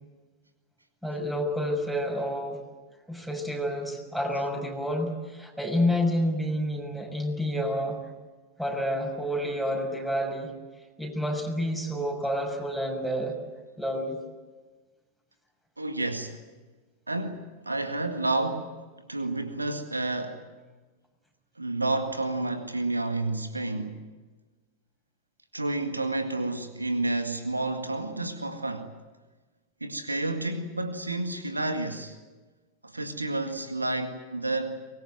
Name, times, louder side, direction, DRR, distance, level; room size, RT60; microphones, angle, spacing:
voice 1, 1.0-2.6 3.1-8.0 8.6-10.5 11.0-13.3 13.8-14.2, equal, 5° right, 6.4 m, -29 dB
voice 2, 15.8-16.4 17.1-18.8 19.1-20.4 21.6-24.0 25.5-28.9 29.8-32.2 32.8-34.8, right 2 dB, 80° right, 1.9 m, -30 dB
24.0 x 21.0 x 9.4 m
figure-of-eight pair, 90°, 0 cm